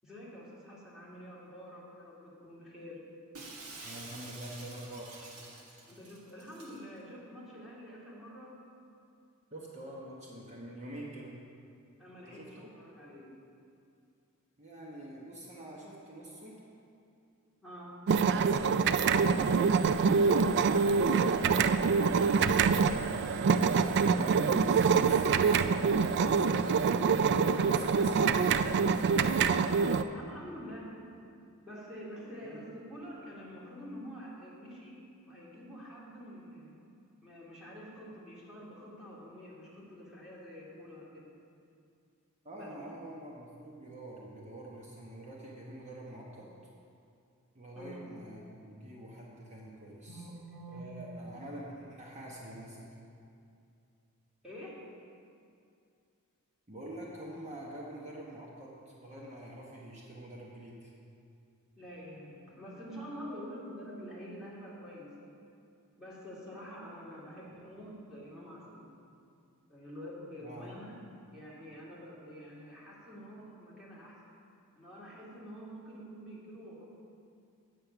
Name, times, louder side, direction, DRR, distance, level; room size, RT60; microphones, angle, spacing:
voice 1, 0.0-3.0 5.9-8.6 12.0-13.4 17.6-18.0 30.1-31.0 31.6-35.0 35.3-36.7 37.2-41.3 42.5-42.7 47.8-48.0 50.1-50.8 54.4-54.8 61.8-65.4 66.0-68.8 69.7-74.2 74.8-76.8, equal, 5° right, -7 dB, 2.4 m, -47 dB
Shatter, 3.3-6.8, right 2 dB, 80° right, 1.6 m, -48 dB
voice 2, 3.8-5.2 9.5-11.3 12.3-12.7 14.6-16.6 18.6-26.8 27.7-28.5 32.4-32.6 42.4-46.5 47.5-50.2 50.7-52.8 56.7-60.9 67.5-67.6 70.4-70.7, right 1 dB, 30° right, -3 dB, 1.1 m, -46 dB
sound 1, 18.1-30.0, right 5 dB, 55° right, 0.3 m, -25 dB
8.5 x 7.8 x 5.8 m, 2.5 s
head